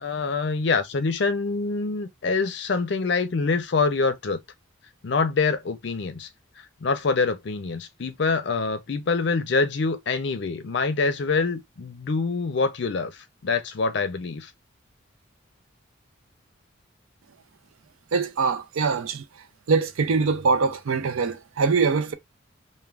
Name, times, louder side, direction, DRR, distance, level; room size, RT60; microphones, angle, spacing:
voice 1, 0.0-4.4 5.0-6.3 6.8-14.5, left 4 dB, 60° left, 0.5 m, -25 dB
voice 2, 18.1-19.2 19.7-22.1, right 4 dB, 85° right, 0.5 m, -23 dB
2.4 x 2.2 x 3.2 m
head